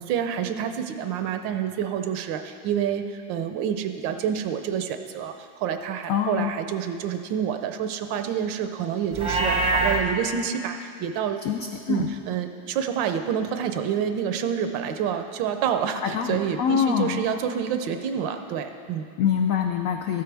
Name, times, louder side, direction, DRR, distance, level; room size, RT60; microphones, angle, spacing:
voice 1, 0.0-11.4 11.9-19.1, right 8 dB, 80° right, 8 dB, 1.3 m, -28 dB
voice 2, 6.1-6.5 11.4-12.1 16.0-17.2 19.2-20.2, left 7 dB, 85° left, 4 dB, 0.7 m, -25 dB
Livestock farm animals working animals, 9.1-10.0, right 2 dB, 30° right, 0.6 m, -23 dB
13.0 x 9.4 x 3.3 m, 2.3 s
omnidirectional pair, 2.0 m